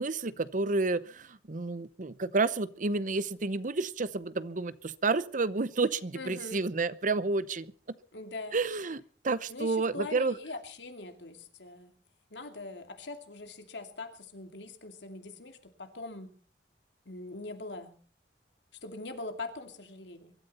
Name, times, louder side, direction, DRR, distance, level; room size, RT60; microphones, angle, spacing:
voice 1, 0.0-8.0 8.5-10.3, right 3 dB, 50° right, 16 dB, 0.8 m, -30 dB
voice 2, 6.1-6.6 8.1-8.6 9.5-11.9 12.3-16.3 17.1-17.9 18.8-20.3, left 3 dB, 80° left, 6 dB, 2.6 m, -42 dB
24.0 x 13.0 x 4.3 m, 0.40 s
head